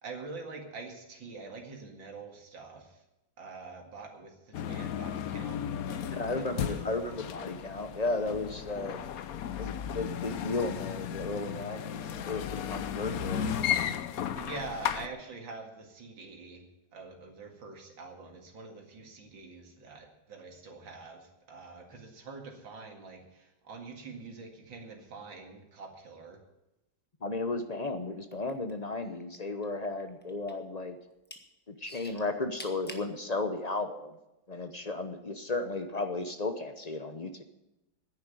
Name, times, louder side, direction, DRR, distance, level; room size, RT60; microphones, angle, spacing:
voice 1, 0.0-3.0 3.4-5.6 5.9-6.8 14.3-16.6 16.9-26.4, right 4 dB, 85° right, 3 dB, 2.8 m, -45 dB
sound 1, 4.5-15.1, left 9 dB, 65° left, 1.0 m, -35 dB
voice 2, 6.0-9.0 9.6-13.4 27.2-31.0 31.7-34.1 34.5-37.4, left 2 dB, 40° left, 8 dB, 0.5 m, -34 dB
sound 2, 28.2-29.4 29.6-30.7 31.1-31.4 31.8-33.1 33.8-33.9, left 1 dB, 5° left, 1.2 m, -46 dB
10.5 x 10.0 x 9.1 m, 0.93 s
omnidirectional pair, 2.0 m